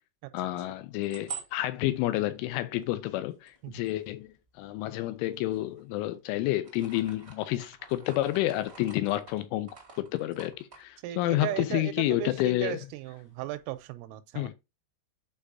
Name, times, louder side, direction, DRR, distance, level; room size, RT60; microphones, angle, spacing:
voice 1, 0.3-9.7 10.0-12.8 14.4-14.5, left 15 dB, 85° left, 2.9 m, -30 dB
sound 1, 0.8-4.8 5.3-6.1 6.4-12.0 12.2-12.3 12.6-13.8, right 6 dB, 55° right, 0.6 m, -48 dB
voice 2, 11.0-14.5, right 16 dB, 85° right, 3.2 m, -37 dB
8.7 x 4.9 x 2.6 m
omnidirectional pair, 5.9 m